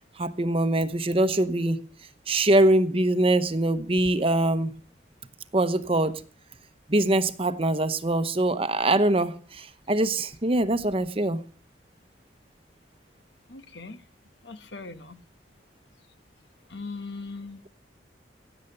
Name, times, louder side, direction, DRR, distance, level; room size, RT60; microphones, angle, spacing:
voice 1, 0.2-1.8 2.3-4.7 5.5-6.2 6.9-11.4, right 1 dB, 30° right, 0.9 m, -23 dB
voice 2, 13.5-14.0 14.4-15.2 16.7-17.6, left 3 dB, 75° left, 1.2 m, -39 dB
16.5 x 8.2 x 6.7 m
head